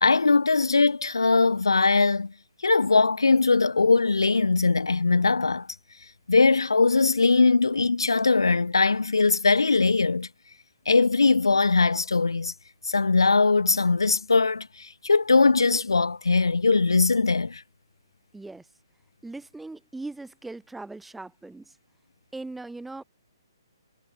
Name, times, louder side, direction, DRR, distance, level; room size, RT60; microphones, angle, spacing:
voice 1, 0.0-2.3 2.6-5.7 6.3-10.3 10.9-12.5 12.8-17.6, left 4 dB, 80° left, 0.4 m, -21 dB
voice 2, 18.3-18.7 19.2-21.8 22.3-23.0, right 2 dB, 5° right, 1.1 m, -39 dB
figure-of-eight pair, 130°, 2 cm